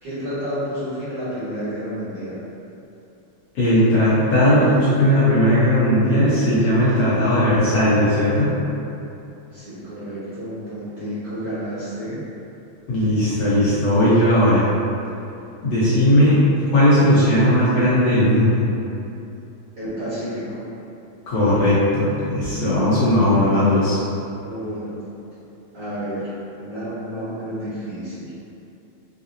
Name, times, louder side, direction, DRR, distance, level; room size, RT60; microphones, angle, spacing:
voice 1, 0.0-2.3 9.5-12.2 19.7-20.7 24.4-25.0 25.7-28.3, equal, 55° right, -15 dB, 1.2 m, -30 dB
voice 2, 3.5-8.6 12.9-14.7 15.6-16.5 16.7-18.6 21.3-24.0, left 1 dB, 65° left, -12 dB, 1.6 m, -17 dB
5.7 x 2.0 x 2.5 m, 2.8 s
omnidirectional pair, 3.6 m